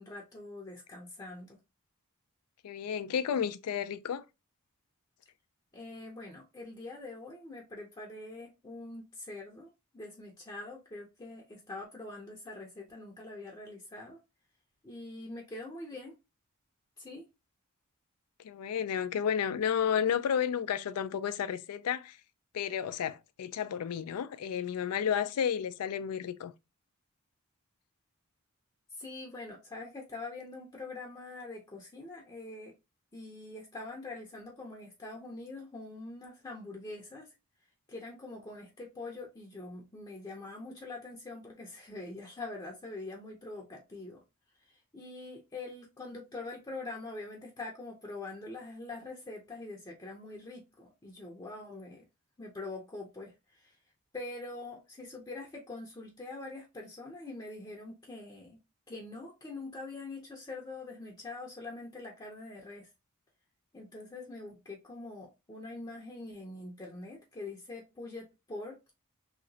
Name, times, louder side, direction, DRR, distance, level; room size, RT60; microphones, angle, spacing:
voice 1, 0.0-1.6 5.7-14.2 14.8-16.1 17.0-17.3 28.9-32.7 33.1-37.3 37.9-44.2 44.6-52.1 52.4-53.8 54.1-58.6 58.9-62.9 63.7-68.8, left 2 dB, 20° left, 0.6 m, -44 dB
voice 2, 2.6-4.2 18.4-22.2 22.5-26.5, left 8 dB, 90° left, 0.4 m, -32 dB
3.0 x 2.9 x 2.7 m
head